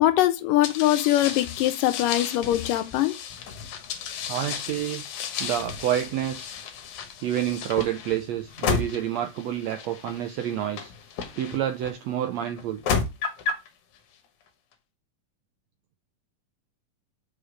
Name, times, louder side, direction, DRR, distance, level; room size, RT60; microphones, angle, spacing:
voice 1, 0.0-3.2, left 14 dB, 85° left, 2.4 m, -22 dB
sound 1, 0.6-11.9 12.6-13.7, left 6 dB, 70° left, 2.4 m, -33 dB
voice 2, 4.3-5.0 5.4-6.6 7.2-10.9 11.4-12.8, right 11 dB, 80° right, 1.5 m, -28 dB
5.5 x 5.1 x 6.3 m
omnidirectional pair, 3.8 m